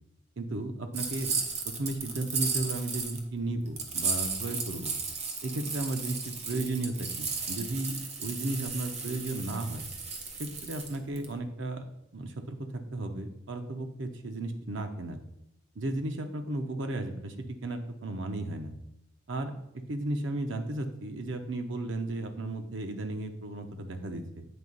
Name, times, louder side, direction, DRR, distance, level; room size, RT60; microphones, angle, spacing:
voice 1, 0.4-1.3 1.6-4.9 5.4-9.8 10.4-11.8 12.1-15.2 15.8-18.7 19.3-19.5 19.9-24.5, right 2 dB, 75° right, 6 dB, 0.8 m, -34 dB
sound 1, 0.9-3.2 3.8-11.3, right 4 dB, 35° right, 0.8 m, -34 dB
7.9 x 2.9 x 5.3 m, 0.78 s
head